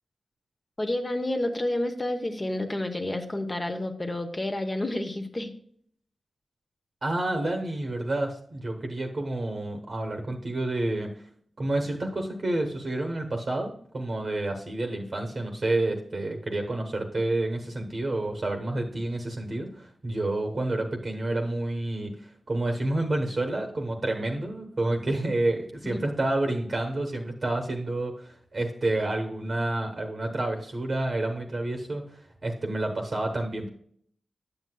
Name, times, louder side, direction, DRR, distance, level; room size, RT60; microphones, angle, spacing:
voice 1, 0.8-5.5 25.8-26.0, left 1 dB, 20° left, 5 dB, 0.7 m, -30 dB
voice 2, 7.0-11.1 11.6-33.7, right 2 dB, 35° right, 3 dB, 1.0 m, -29 dB
10.0 x 7.8 x 2.2 m, 0.63 s
wide cardioid pair, 175°, 0 cm